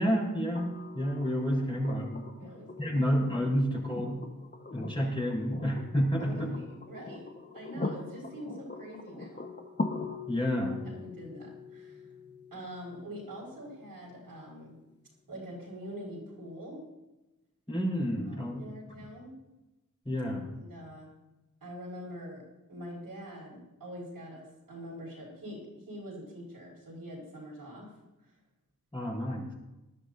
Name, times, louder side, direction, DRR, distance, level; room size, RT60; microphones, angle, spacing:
voice 1, 0.0-2.2 2.8-4.2 4.7-6.5 10.3-10.8 17.7-18.6 20.0-20.5 28.9-29.5, equal, 15° left, -3 dB, 4.3 m, -30 dB
sound 1, 0.6-14.5 16.2-16.3, left 3 dB, 30° left, 1.2 m, -42 dB
voice 2, 2.4-3.2 6.1-9.5 10.8-12.0 12.5-14.7 15.3-16.9 18.2-19.3 20.6-21.2 21.6-22.4 22.7-27.9, equal, 85° right, -4 dB, 5.4 m, -44 dB
19.5 x 12.0 x 2.7 m, 1.0 s
wide cardioid pair, 65°, 35 cm